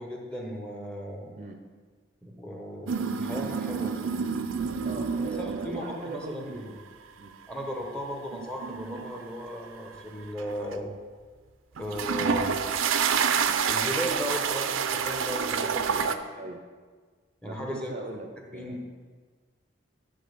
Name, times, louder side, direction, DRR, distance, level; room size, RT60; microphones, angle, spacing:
voice 1, 0.0-1.4 2.2-4.2 5.2-6.7 7.5-10.9 11.8-12.7 13.6-16.0 16.3-16.4 17.4-17.9 18.5-18.8, equal, 5° left, 0 dB, 1.1 m, -36 dB
sound 1, 2.9-6.0 6.5-6.8 8.3-10.0 10.4-10.7 11.8-16.2, right 6 dB, 90° right, 0.5 m, -28 dB
voice 2, 4.8-6.8 7.2-7.3 15.8-16.1 16.4-16.7 17.4-18.8, right 2 dB, 40° right, 4 dB, 0.6 m, -39 dB
10.5 x 3.9 x 6.7 m, 1.5 s
head